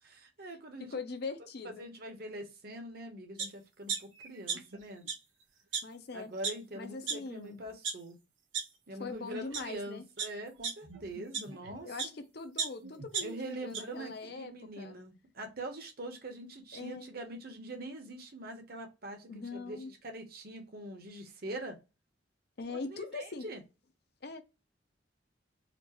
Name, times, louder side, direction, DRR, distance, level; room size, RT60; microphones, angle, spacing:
voice 1, 0.0-0.9 1.6-5.1 6.1-8.2 8.9-11.9 13.2-21.8 22.7-23.6, right 1 dB, 55° right, 1.0 m, -43 dB
voice 2, 0.8-1.9 5.8-6.3 6.7-7.6 9.0-10.0 11.8-15.0 16.7-17.1 19.3-19.9 22.6-23.4 24.2-24.4, left 3 dB, 55° left, 0.7 m, -42 dB
sound 1, 3.4-3.5 3.9-4.8 5.0-5.1 5.7-5.8 6.4-6.5 7.1-7.2 7.6-7.9 8.5-8.6 9.3-9.6 10.2-12.1 12.6-13.8 14.2-14.3, right 6 dB, 90° right, 1.1 m, -35 dB
4.3 x 2.5 x 3.0 m
head